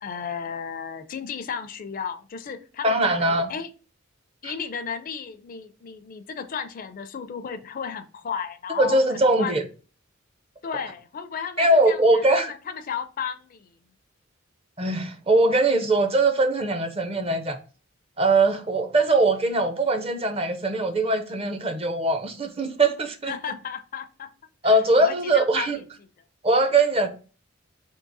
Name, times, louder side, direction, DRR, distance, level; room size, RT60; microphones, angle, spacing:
voice 1, 0.0-3.7 4.4-9.5 10.6-13.8 23.3-24.3 24.6-25.8, left 6 dB, 45° left, 0.4 m, -34 dB
voice 2, 2.8-3.5 4.4-4.5 8.8-9.6 11.6-12.5 14.8-17.6 18.2-23.3 24.6-25.8 26.4-27.1, right 2 dB, 30° right, 0.5 m, -21 dB
3.7 x 2.7 x 4.0 m
head